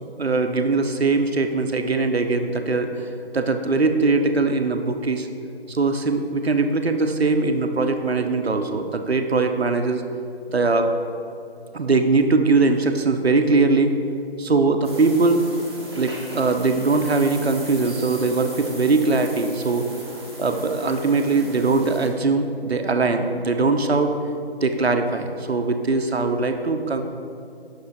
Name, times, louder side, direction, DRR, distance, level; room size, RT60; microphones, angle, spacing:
voice 1, 0.0-5.3 5.7-10.0 10.5-10.9 11.7-13.9 14.4-15.5 16.0-19.9 20.4-24.1 24.6-27.0, right 3 dB, 70° right, 7 dB, 0.6 m, -21 dB
sound 1, 14.8-22.1, right 1 dB, 25° right, 0.9 m, -38 dB
7.3 x 6.2 x 3.2 m, 2.6 s
figure-of-eight pair, 160°, 32 cm